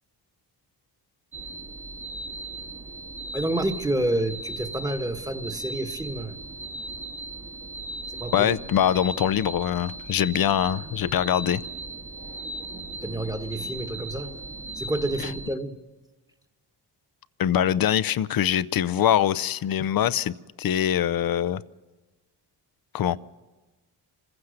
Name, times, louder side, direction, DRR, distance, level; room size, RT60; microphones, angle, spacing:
sound 1, 1.3-15.5, right 2 dB, 30° right, 1.5 m, -37 dB
voice 1, 3.3-6.4 8.1-8.5 13.0-14.3 14.7-15.8, right 1 dB, 10° right, 1.4 m, -29 dB
voice 2, 8.3-11.6 17.4-21.6 22.9-23.2, left 10 dB, 55° left, 0.6 m, -23 dB
26.0 x 15.5 x 6.5 m
cardioid pair, 85°, 43 cm